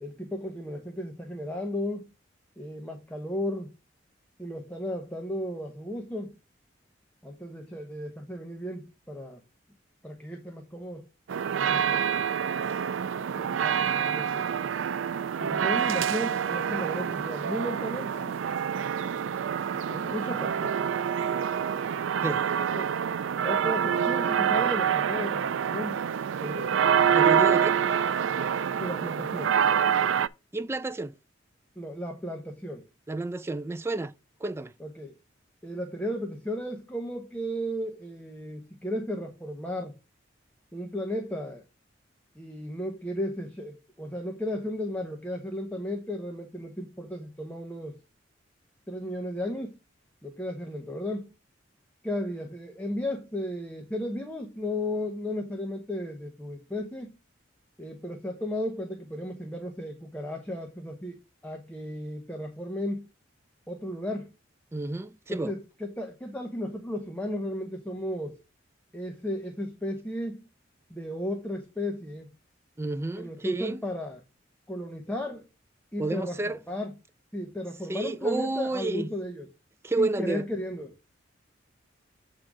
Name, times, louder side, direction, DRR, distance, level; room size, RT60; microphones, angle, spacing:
voice 1, 0.0-2.1 2.6-3.7 4.4-6.4 7.2-9.4 10.0-11.1 11.5-12.1 13.3-14.5 15.4-18.4 19.7-20.8 22.7-22.9 23.4-26.0 26.4-26.8 28.8-29.6 31.8-32.9 34.8-35.1 35.6-39.9 40.7-41.6 42.3-48.0 48.9-49.8 50.2-51.3 52.0-57.2 57.8-63.1 63.7-64.3 65.4-68.4 68.9-70.4 70.9-72.3 73.2-74.2 74.7-75.5 75.9-76.9 77.3-79.5 80.0-80.9, left 1 dB, 10° left, 0.9 m, -34 dB
sound 1, 11.3-30.3, right 8 dB, 85° right, 0.4 m, -26 dB
voice 2, 27.1-27.8 30.5-31.2 33.1-34.1 34.4-34.7 64.7-65.5 72.8-73.8 76.0-76.6 77.9-79.1 79.8-80.5, right 2 dB, 15° right, 0.3 m, -30 dB
7.6 x 3.8 x 6.0 m
head